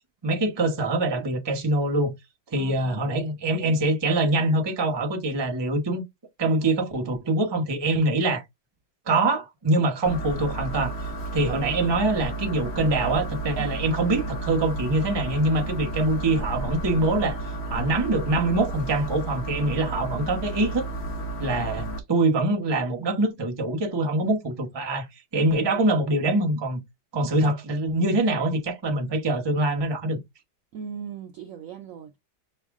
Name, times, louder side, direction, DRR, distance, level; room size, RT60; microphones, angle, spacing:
voice 1, 0.2-2.1 2.5-6.0 6.4-8.4 9.1-10.9 11.3-17.4 17.7-20.9 21.4-25.1 25.3-26.8 27.1-30.2, right 2 dB, 25° right, 0.5 m, -24 dB
voice 2, 2.6-3.0 13.6-13.7 15.6-15.7 30.7-32.2, right 7 dB, 70° right, 0.8 m, -39 dB
sound 1, 10.1-22.0, right 2 dB, 45° left, 0.9 m, -32 dB
5.5 x 2.3 x 3.5 m
omnidirectional pair, 1.9 m